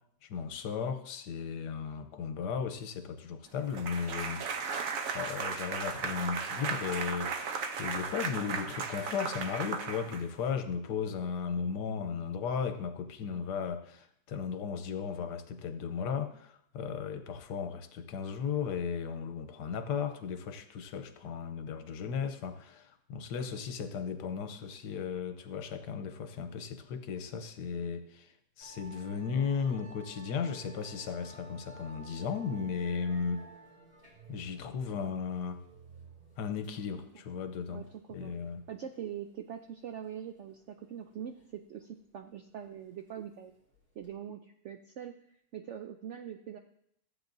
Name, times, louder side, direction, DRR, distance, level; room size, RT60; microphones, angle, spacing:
voice 1, 0.2-4.4 5.1-7.3 7.8-33.4 34.3-35.6 36.4-37.8 38.1-38.6, left 6 dB, 85° left, 9 dB, 1.4 m, -35 dB
sound 1, 3.7-10.5, right 5 dB, 60° right, 1.1 m, -36 dB
Musical instrument, 28.6-44.1, right 3 dB, 35° right, 2.7 m, -55 dB
voice 2, 37.7-38.3 38.7-43.5 44.0-45.1 45.5-46.6, right 9 dB, 75° right, 6 dB, 0.6 m, -43 dB
14.0 x 8.1 x 2.6 m, 0.72 s
omnidirectional pair, 1.8 m